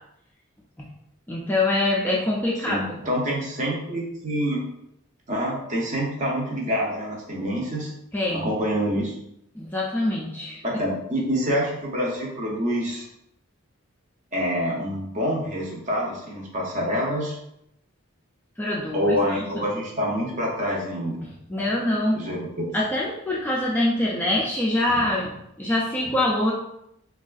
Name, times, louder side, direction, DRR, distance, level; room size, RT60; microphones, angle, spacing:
voice 1, 1.3-3.0 8.1-8.5 9.6-10.6 18.6-19.6 21.5-22.2 22.7-25.3 25.6-26.5, left 1 dB, 10° left, -5 dB, 0.3 m, -24 dB
voice 2, 2.6-4.6 5.3-7.9 8.3-9.1 10.6-13.0 14.3-17.4 18.9-21.2 22.1-22.4, equal, 35° right, -2 dB, 0.7 m, -26 dB
3.5 x 2.3 x 2.3 m, 0.79 s
head